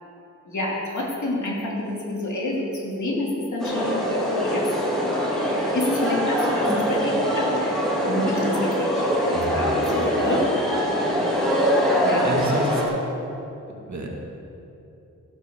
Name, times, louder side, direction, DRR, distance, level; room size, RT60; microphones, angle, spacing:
voice 1, 0.5-4.7 5.7-7.7 8.1-10.5 12.0-12.3, left 1 dB, 70° left, -3 dB, 2.9 m, -28 dB
plaza zipa, 3.6-12.8, equal, ahead, 2.7 m, -23 dB
voice 2, 9.3-9.8 12.2-12.8 13.7-14.1, right 1 dB, 65° right, -1 dB, 2.1 m, -30 dB
15.0 x 6.2 x 7.0 m, 2.8 s
wide cardioid pair, 80°, 31 cm